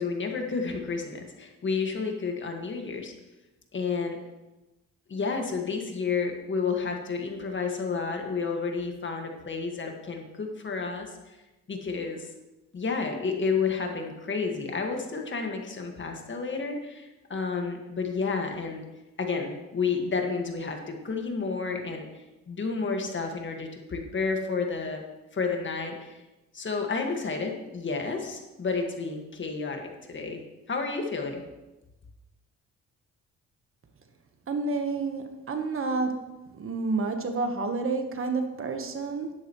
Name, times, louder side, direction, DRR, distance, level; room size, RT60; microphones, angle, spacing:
voice 1, 0.0-3.1 3.7-4.2 5.1-11.4 11.7-12.3 12.7-18.8 19.2-22.1 22.5-25.0 25.3-26.2 26.5-30.4 30.7-31.4, left 4 dB, 40° left, 3 dB, 1.8 m, -31 dB
voice 2, 34.5-36.1 36.6-39.3, right 3 dB, 45° right, 6 dB, 1.2 m, -29 dB
11.0 x 10.0 x 3.1 m, 1.0 s
cardioid pair, 90°, 30 cm